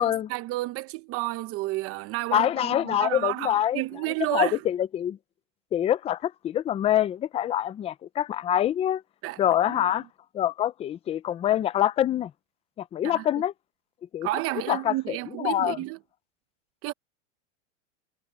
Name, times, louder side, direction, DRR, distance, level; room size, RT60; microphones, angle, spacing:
voice 1, 0.0-4.6 9.2-9.4 9.7-9.8 13.0-13.2 14.2-16.0 16.8-16.9, right 19 dB, 35° right, 0.9 m, -31 dB
voice 2, 2.3-3.8 4.3-5.2 5.7-9.0 9.4-10.1 10.3-12.3 12.8-13.5 14.1-14.3 14.7-15.8, left 11 dB, 15° left, 0.5 m, -25 dB
supercardioid pair, 140°, 38 cm